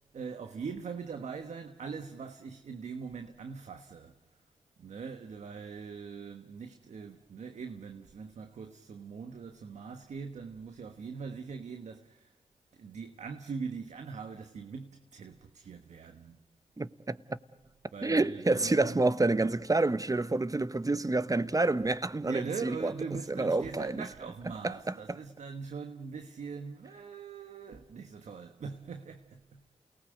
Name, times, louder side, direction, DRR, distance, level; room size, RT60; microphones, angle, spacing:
voice 1, 0.1-4.2 4.8-12.3 12.7-16.4 17.9-19.2 22.2-29.6, right 5 dB, 85° right, 1.3 m, -42 dB
voice 2, 16.8-17.2 18.0-22.9 23.3-24.0 24.6-24.9, right 2 dB, 30° right, 1.2 m, -28 dB
28.5 x 19.0 x 8.0 m
cardioid pair, 40°, 12 cm